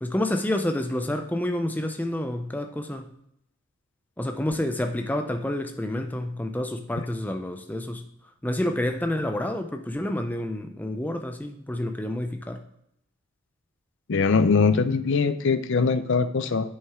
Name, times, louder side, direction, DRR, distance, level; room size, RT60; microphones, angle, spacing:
voice 1, 0.0-3.1 4.2-8.1 8.4-12.6, left 1 dB, 10° left, 5 dB, 0.5 m, -29 dB
voice 2, 14.1-16.8, left 4 dB, 55° left, 11 dB, 0.5 m, -22 dB
8.5 x 6.5 x 3.6 m, 0.77 s
head